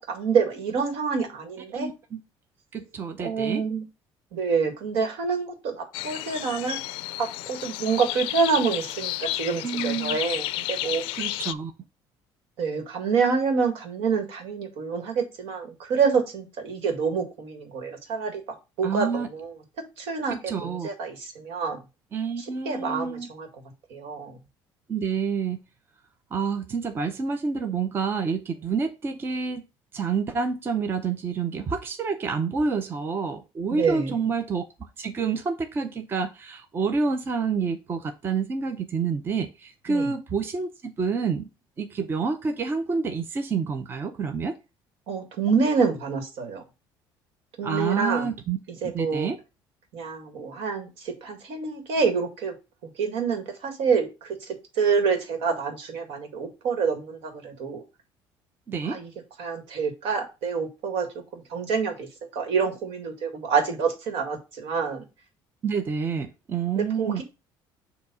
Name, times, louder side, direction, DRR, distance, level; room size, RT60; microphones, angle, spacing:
voice 1, 0.1-1.9 3.2-3.8 4.3-6.8 7.2-11.0 12.6-18.4 18.8-19.5 20.0-21.8 22.4-23.5 23.9-24.3 33.7-34.1 39.9-40.1 45.1-46.6 47.6-48.3 48.8-49.3 49.9-52.6 53.0-57.8 58.8-59.1 59.4-62.1 62.3-65.0 66.8-67.2, right 5 dB, 75° right, 1.9 m, -27 dB
voice 2, 1.7-2.2 2.7-3.6 9.6-10.2 11.2-11.7 18.8-19.3 20.3-20.9 22.1-23.3 24.9-25.6 26.3-29.6 29.9-34.6 35.0-41.5 41.8-44.5 47.6-48.6 48.9-49.4 58.7-59.0 65.6-67.2, right 5 dB, 25° right, 0.6 m, -28 dB
sound 1, 5.9-11.5, left 17 dB, 85° left, 0.3 m, -32 dB
7.1 x 2.8 x 5.4 m
cardioid pair, 160°, 9 cm